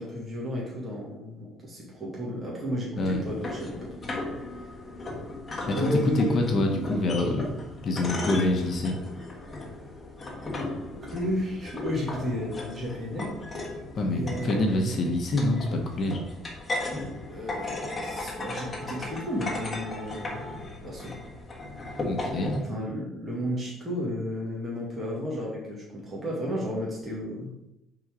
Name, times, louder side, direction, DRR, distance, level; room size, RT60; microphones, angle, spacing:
voice 1, 0.0-4.1 5.8-6.5 11.1-13.3 14.1-15.0 17.3-20.4 20.8-21.2 22.6-27.5, equal, 20° right, -5 dB, 1.8 m, -33 dB
sound 1, 3.0-22.6, left 2 dB, 25° left, 1.4 m, -36 dB
voice 2, 5.7-7.5 7.8-9.0 13.9-16.2 22.0-22.6, left 2 dB, 45° left, 2 dB, 1.0 m, -26 dB
sound 2, 16.8-21.0, right 1 dB, 5° right, 1.7 m, -44 dB
5.3 x 3.9 x 4.8 m, 0.87 s
cardioid pair, 110°, 0 cm